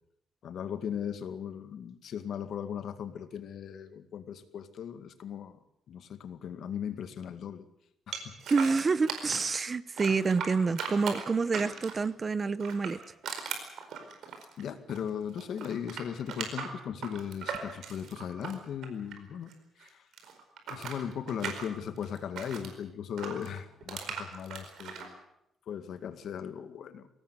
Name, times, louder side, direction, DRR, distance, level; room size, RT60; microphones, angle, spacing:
voice 1, 0.4-5.6 5.9-7.7 8.1-8.4 14.6-19.5 19.8-20.1 20.7-25.2 25.7-27.1, left 8 dB, 65° left, 10 dB, 2.0 m, -38 dB
sound 1, 8.1-9.6 10.0-12.1 12.6-15.1 15.3-19.5 19.8-22.7 23.2-25.1, right 6 dB, 75° right, 4.7 m, -39 dB
voice 2, 8.5-13.0, right 4 dB, 30° right, 17 dB, 0.8 m, -28 dB
23.0 x 18.0 x 8.2 m, 0.81 s
cardioid pair, 125°, 0 cm